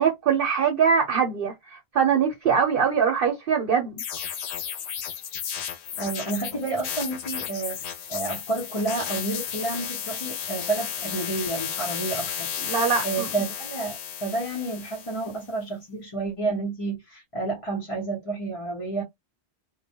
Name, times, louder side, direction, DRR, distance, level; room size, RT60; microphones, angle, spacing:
voice 1, 0.0-4.0 12.6-13.3, right 6 dB, 60° right, 0.8 m, -23 dB
sound 1, 4.0-15.4, left 8 dB, 80° left, 0.8 m, -33 dB
voice 2, 6.0-12.5 13.0-19.0, right 3 dB, 30° left, 0.9 m, -30 dB
2.2 x 2.2 x 2.8 m
omnidirectional pair, 1.1 m